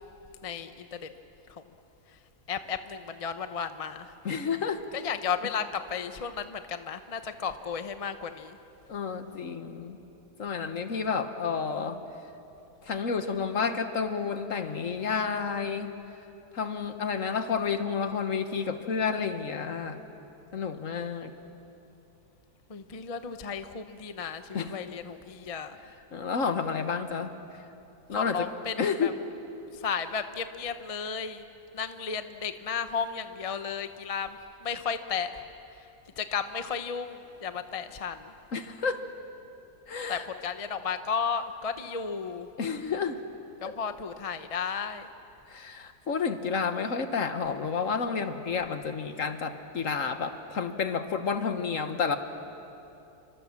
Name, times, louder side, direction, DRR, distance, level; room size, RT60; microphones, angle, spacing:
voice 1, 0.4-1.1 1.5-1.6 2.5-4.1 4.9-8.6 22.7-25.7 28.1-29.1 29.7-31.4 31.7-35.4 36.2-38.3 40.1-42.5 43.6-45.1, left 6 dB, 30° left, 9 dB, 0.7 m, -34 dB
voice 2, 4.2-4.8 8.9-10.0 10.4-12.0 12.8-15.9 16.5-20.0 20.5-21.3 24.5-24.7 26.1-27.3 28.1-28.5 28.8-29.1 38.5-39.1 39.9-40.3 42.6-43.2 45.5-52.2, left 5 dB, 55° left, 8 dB, 1.6 m, -30 dB
29.0 x 25.0 x 7.4 m, 2.9 s
omnidirectional pair, 1.6 m